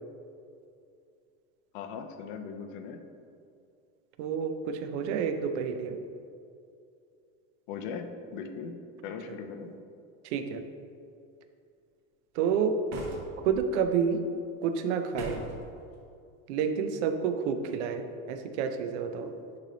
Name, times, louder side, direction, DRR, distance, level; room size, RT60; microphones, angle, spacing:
voice 1, 1.7-3.0 7.7-9.7, left 5 dB, 40° left, 6 dB, 0.4 m, -39 dB
voice 2, 4.2-6.0 10.2-10.6 12.3-12.8 13.4-14.2 14.6-15.4 16.5-19.3, right 7 dB, 60° right, 7 dB, 0.6 m, -29 dB
sound 1, 12.9-13.6 15.1-15.7, right 1 dB, 40° right, 1.0 m, -39 dB
9.5 x 3.3 x 3.8 m, 2.5 s
supercardioid pair, 175°, 40 cm